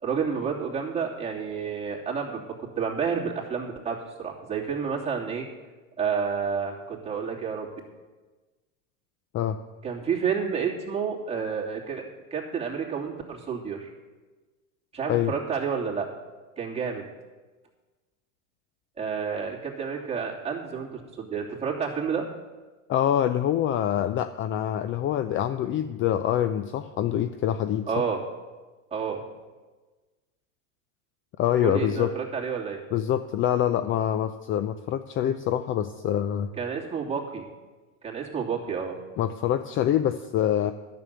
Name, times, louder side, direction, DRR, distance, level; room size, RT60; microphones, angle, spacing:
voice 1, 0.0-5.5 6.0-7.7 9.8-13.9 14.9-16.1 16.6-17.0 19.0-22.2 27.9-28.2 28.9-29.2 31.6-32.8 36.6-37.5 38.0-39.0, right 6 dB, 15° right, -3 dB, 3.0 m, -30 dB
voice 2, 22.9-27.9 31.4-32.1 32.9-36.5 39.2-40.7, left 10 dB, 30° left, 11 dB, 0.5 m, -25 dB
11.0 x 7.0 x 9.4 m, 1.3 s
supercardioid pair, 115°, 40 cm